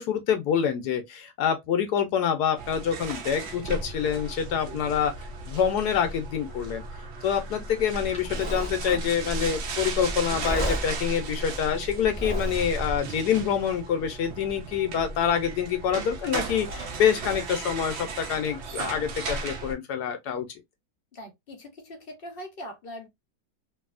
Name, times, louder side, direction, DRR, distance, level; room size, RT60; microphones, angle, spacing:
voice 1, 0.0-5.1 5.4-6.8 7.2-20.5, left 8 dB, 70° left, 1.1 m, -26 dB
sound 1, 2.6-19.7, right 4 dB, 80° right, 0.6 m, -36 dB
Livestock farm animals working animals, 7.9-13.0, equal, 5° left, 0.7 m, -33 dB
voice 2, 21.1-23.1, equal, 50° left, 0.7 m, -41 dB
2.7 x 2.6 x 2.4 m
omnidirectional pair, 2.0 m